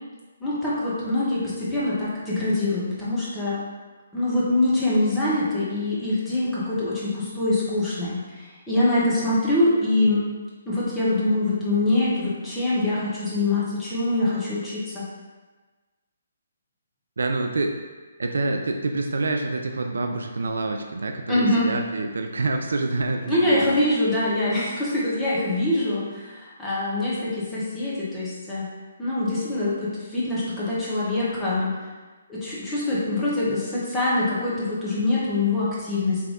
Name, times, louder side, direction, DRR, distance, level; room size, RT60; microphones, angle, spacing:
voice 1, 0.4-3.6 4.1-10.2 10.6-15.0 21.3-21.7 23.3-28.6 29.0-31.7 32.3-36.3, left 2 dB, 10° left, -9 dB, 1.3 m, -24 dB
voice 2, 17.2-17.8 18.2-23.6, right 2 dB, 65° right, 4 dB, 0.3 m, -27 dB
3.4 x 3.2 x 3.9 m, 1.3 s
figure-of-eight pair, 135°, 0 cm